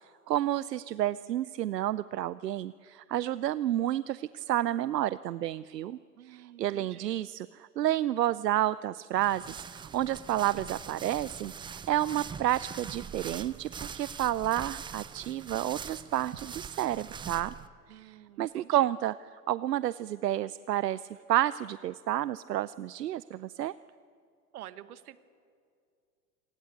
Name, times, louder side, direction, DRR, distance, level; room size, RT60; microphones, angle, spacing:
voice 1, 0.3-6.0 6.3-17.5 17.9-19.1 19.5-23.7, right 13 dB, 80° right, 18 dB, 0.6 m, -30 dB
voice 2, 6.1-7.2 17.9-18.9 24.5-25.2, right 13 dB, 65° right, 15 dB, 1.3 m, -49 dB
sound 1, 9.1-17.7, right 7 dB, 10° right, 0.5 m, -43 dB
26.0 x 19.0 x 8.1 m, 2.3 s
hypercardioid pair, 100°, 48 cm